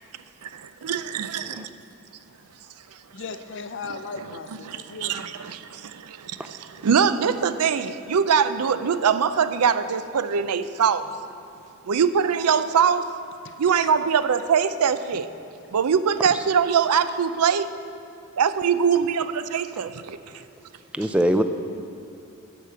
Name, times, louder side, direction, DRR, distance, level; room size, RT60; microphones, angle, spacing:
voice 1, 0.4-1.7 4.7-11.1 11.9-13.1 13.6-15.3 15.7-17.7 18.4-20.2, right 7 dB, 90° right, 12 dB, 0.5 m, -23 dB
voice 2, 3.1-5.3 11.6-11.7 13.4-13.9 18.9-19.0 20.3-20.4, left 4 dB, 55° left, 9 dB, 0.5 m, -38 dB
voice 3, 20.9-21.4, equal, 5° right, 8 dB, 0.3 m, -22 dB
12.0 x 5.0 x 8.0 m, 2.5 s
head